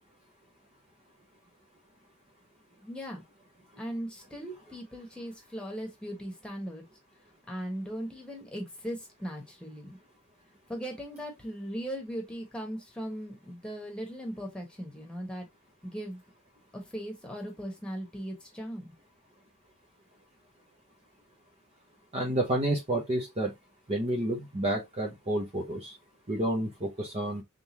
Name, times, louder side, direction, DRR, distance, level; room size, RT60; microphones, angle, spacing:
voice 1, 2.8-3.2 3.8-6.9 7.5-10.0 10.7-15.5 15.8-16.2 16.7-18.9, equal, 5° left, 1.4 m, -38 dB
voice 2, 22.1-23.5 23.9-26.0 26.3-27.4, right 1 dB, 30° right, 0.9 m, -30 dB
3.8 x 3.5 x 3.0 m
head